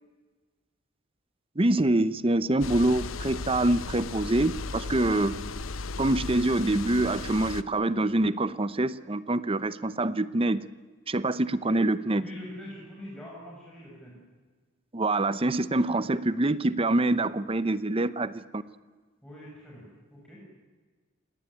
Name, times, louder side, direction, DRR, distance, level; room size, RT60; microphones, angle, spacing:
voice 1, 1.6-5.3 6.0-10.6 11.1-12.2 14.9-18.6, right 2 dB, 30° right, 15 dB, 0.8 m, -25 dB
sound 1, 2.6-7.6, left 4 dB, 90° left, 0.9 m, -36 dB
voice 2, 12.2-14.2 19.2-19.8 20.1-20.4, left 1 dB, 5° left, -5 dB, 6.7 m, -44 dB
28.5 x 19.0 x 9.9 m, 1.4 s
head